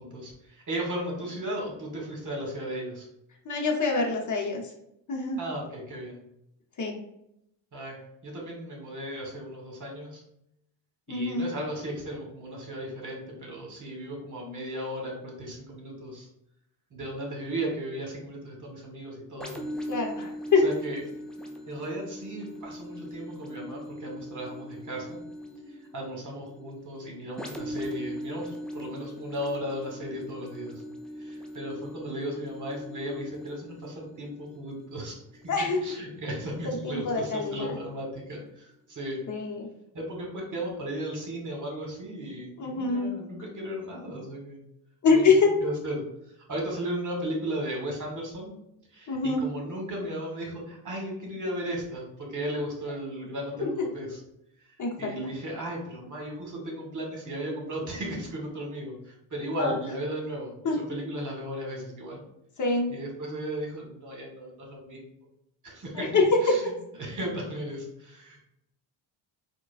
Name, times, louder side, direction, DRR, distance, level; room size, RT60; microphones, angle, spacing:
voice 1, 0.0-3.1 5.4-6.2 7.7-10.2 11.1-16.3 16.9-19.5 20.6-21.0 21.7-25.2 25.7-30.8 31.2-35.2 35.4-35.5 35.8-39.2 39.9-44.6 45.1-45.3 45.6-48.5 48.9-54.2 55.0-62.2 62.9-65.0 65.6-66.1 66.4-66.7 67.0-68.4, equal, 40° right, -1 dB, 1.3 m, -35 dB
voice 2, 3.4-4.6 5.1-5.4 6.8-6.9 11.1-11.5 19.9-20.6 35.5-35.8 36.6-37.7 39.3-39.7 42.6-43.1 45.0-45.6 49.1-49.4 53.6-53.7 54.8-55.1 59.6-59.7 60.6-60.8 62.6-62.9 65.9-66.5, left 4 dB, 40° left, 1 dB, 0.9 m, -25 dB
sound 1, 19.4-36.9 37.5-37.6, equal, ahead, 0.4 m, -41 dB
4.5 x 2.3 x 2.4 m, 0.79 s
cardioid pair, 85°, 48 cm